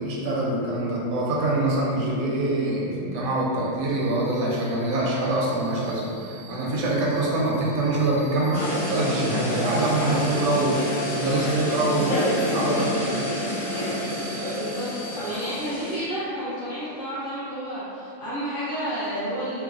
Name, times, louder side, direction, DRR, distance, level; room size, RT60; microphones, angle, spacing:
voice 1, 0.0-10.8 11.1-12.2 12.5-13.2, right 2 dB, 80° right, -4 dB, 1.0 m, -24 dB
sound 1, 3.8-15.7, right 3 dB, 55° right, 0.6 m, -45 dB
sound 2, 8.5-16.0, left 1 dB, 75° left, 1.0 m, -28 dB
voice 2, 12.0-12.5 14.5-19.6, equal, 45° left, -12 dB, 0.8 m, -31 dB
3.1 x 2.0 x 2.4 m, 2.5 s
omnidirectional pair, 1.4 m